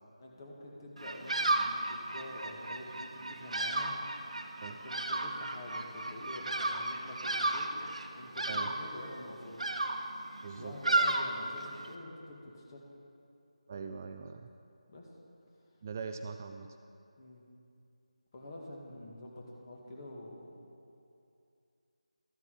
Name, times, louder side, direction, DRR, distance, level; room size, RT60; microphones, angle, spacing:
voice 1, 0.2-4.0 4.7-7.8 8.1-9.6 10.5-12.9 14.9-15.1 17.2-17.4 18.3-20.7, left 1 dB, 35° left, -2 dB, 1.9 m, -47 dB
Bird vocalization bird call bird song, 1.0-11.9, right 2 dB, 70° right, 0.9 m, -34 dB
voice 2, 10.4-10.7 13.7-14.5 15.8-16.7, right 5 dB, 25° right, 6 dB, 0.3 m, -41 dB
13.0 x 8.1 x 5.5 m, 2.6 s
figure-of-eight pair, 165°, 4 cm